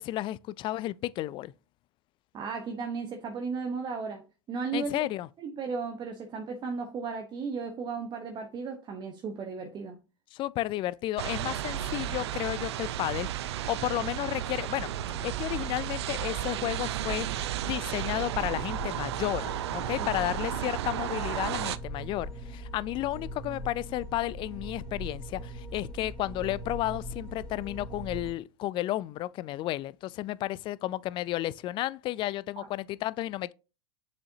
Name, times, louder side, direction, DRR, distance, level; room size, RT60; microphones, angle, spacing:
voice 1, 0.0-1.5 4.7-5.3 10.3-13.3 13.7-14.9 15.2-17.3 17.6-33.5, left 15 dB, 35° left, 0.4 m, -32 dB
voice 2, 2.3-5.1 5.4-10.0 20.0-20.1 32.6-32.7, right 5 dB, 30° right, 1.0 m, -35 dB
sound 1, 11.2-21.8, right 12 dB, 70° right, 0.5 m, -33 dB
sound 2, 14.8-28.3, right 1 dB, 5° left, 2.6 m, -41 dB
6.9 x 5.0 x 2.8 m
hypercardioid pair, 95°, 15 cm